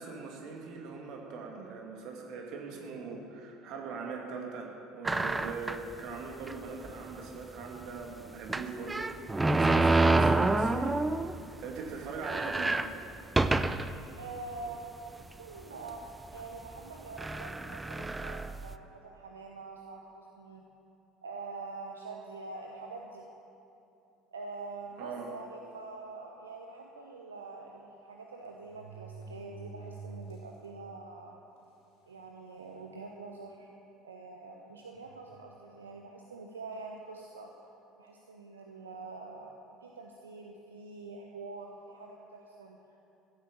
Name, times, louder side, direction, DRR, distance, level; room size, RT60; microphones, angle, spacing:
voice 1, 0.0-11.0 11.6-12.8 25.0-25.3, right 4 dB, 50° right, 0 dB, 2.3 m, -41 dB
sound 1, 5.0-5.9 6.5-6.6 6.8-6.9 8.5-11.4 11.8-11.9 12.1-14.0 14.6-14.7 15.6-15.9 16.7-16.8 17.2-18.7, right 2 dB, 15° right, 0.5 m, -27 dB
voice 2, 14.1-20.6 21.2-23.3 24.3-31.3 32.1-33.7 34.0-37.5 38.0-39.5 39.8-42.8, right 3 dB, 75° right, 1 dB, 0.8 m, -45 dB
sound 2, 24.8-25.1 25.8-25.9 26.2-26.3 27.6-27.7 28.4-30.7 31.1-31.2 32.0-32.1 32.5-32.9 33.5-33.7 34.9-35.8 36.7-37.0, right 4 dB, 60° left, 3.5 m, -49 dB
15.0 x 9.0 x 7.0 m, 2.8 s
figure-of-eight pair, 65°, 0 cm